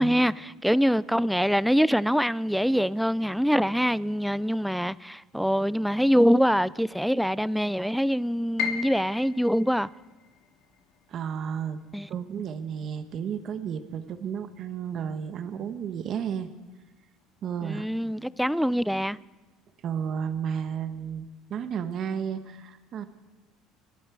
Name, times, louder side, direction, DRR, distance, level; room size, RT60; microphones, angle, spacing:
voice 1, 0.0-9.9 11.9-12.1 17.6-19.2, equal, ahead, 0.4 m, -24 dB
Piano, 8.6-14.5 14.8-16.0 16.4-16.5 17.2-17.5, left 8 dB, 75° left, 2.0 m, -39 dB
voice 2, 11.1-11.8 12.1-16.5 17.4-17.9 19.8-23.1, right 7 dB, 50° right, 1.1 m, -32 dB
24.5 x 11.5 x 4.7 m
supercardioid pair, 110°, 0 cm